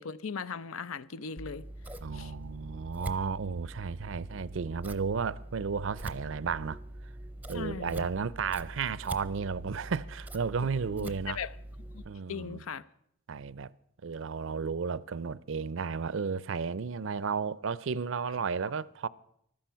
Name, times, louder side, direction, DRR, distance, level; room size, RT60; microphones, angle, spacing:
voice 1, 0.0-1.7 2.1-2.3 7.5-8.1 11.0-11.5 11.9-12.0 12.3-12.8, left 6 dB, 90° left, 0.6 m, -38 dB
Scissors, 1.4-12.1, right 1 dB, 10° right, 0.6 m, -44 dB
voice 2, 2.0-6.8 7.5-11.4 12.0-12.6 13.3-13.7 14.0-19.1, right 5 dB, 70° right, 0.5 m, -33 dB
15.0 x 12.0 x 5.6 m
head